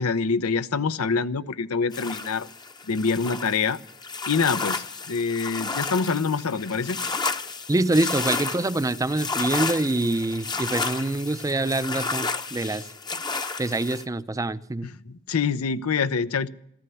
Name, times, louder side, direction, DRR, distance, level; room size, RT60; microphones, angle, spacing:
voice 1, 0.0-2.5 2.9-3.8 4.3-7.0 14.8-16.5, left 5 dB, 85° left, 0.7 m, -25 dB
sound 1, 1.9-14.0, left 4 dB, 20° left, 0.7 m, -32 dB
voice 2, 7.7-12.8 13.6-14.9, right 2 dB, 15° right, 0.5 m, -25 dB
14.5 x 14.0 x 6.9 m
head